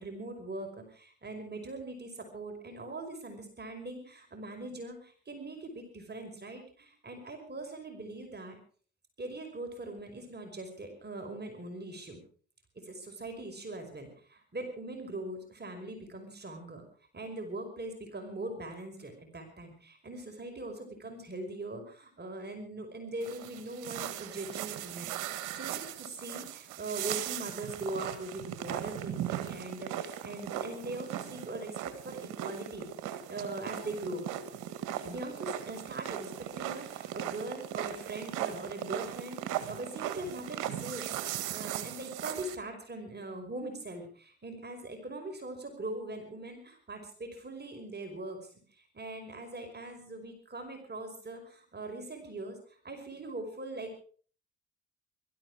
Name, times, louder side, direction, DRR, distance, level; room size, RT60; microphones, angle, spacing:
voice 1, 0.0-8.6 9.2-12.2 12.8-16.8 17.1-34.2 35.0-36.3 36.6-54.0, right 2 dB, 30° right, 4 dB, 5.4 m, -41 dB
sound 1, 23.2-42.6, right 11 dB, 75° right, 1.7 m, -38 dB
21.5 x 13.5 x 4.9 m, 0.43 s
hypercardioid pair, 50°, 32 cm